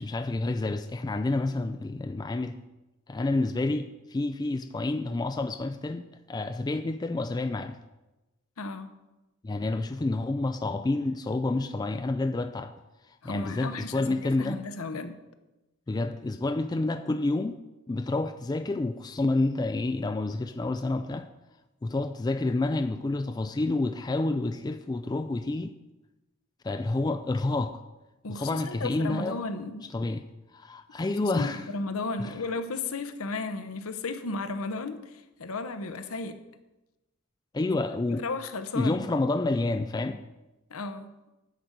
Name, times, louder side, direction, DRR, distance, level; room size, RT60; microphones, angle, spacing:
voice 1, 0.0-2.6 3.1-7.8 9.4-12.7 13.2-14.6 15.9-17.6 17.9-21.3 21.8-25.7 26.6-27.8 28.3-29.4 29.9-30.3 30.5-31.7 32.2-32.3 37.5-38.2 38.7-40.2, left 2 dB, 20° left, 0.3 m, -29 dB
voice 2, 8.6-8.9 13.2-15.2 28.2-29.9 31.3-36.4 37.7-37.8 38.2-39.0 40.7-41.1, left 3 dB, 75° left, 0.8 m, -34 dB
10.0 x 5.2 x 7.8 m
head